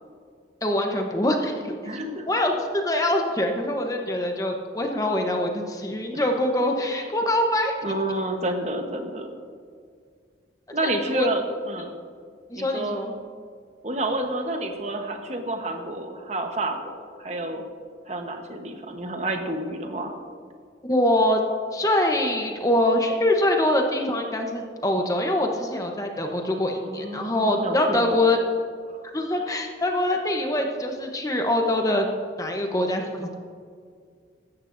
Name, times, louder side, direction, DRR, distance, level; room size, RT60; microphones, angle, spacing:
voice 1, 0.6-1.7 2.3-7.7 10.8-11.3 12.5-13.1 20.9-21.4 21.7-28.4 29.1-32.1 32.4-33.3, left 1 dB, 20° left, 3 dB, 0.9 m, -24 dB
voice 2, 1.8-2.3 6.1-6.3 7.8-9.3 10.7-12.0 12.6-13.0 13.8-17.6 18.1-20.1 26.8-28.2 28.9-29.0 29.4-29.5, right 1 dB, 40° right, 4 dB, 1.1 m, -29 dB
15.5 x 12.5 x 2.6 m, 2.1 s
head